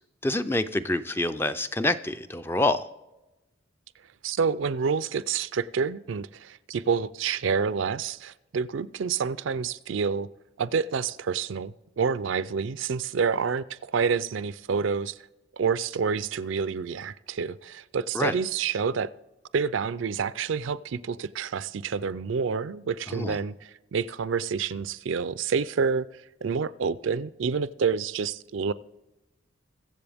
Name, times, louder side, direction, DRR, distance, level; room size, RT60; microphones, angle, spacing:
voice 1, 0.2-2.9 18.1-18.4 23.1-23.4, left 2 dB, 10° left, 0.4 m, -27 dB
voice 2, 4.2-10.3 10.6-15.2 15.5-19.1 19.5-28.7, right 5 dB, 65° right, 0.4 m, -28 dB
22.5 x 7.6 x 3.5 m
head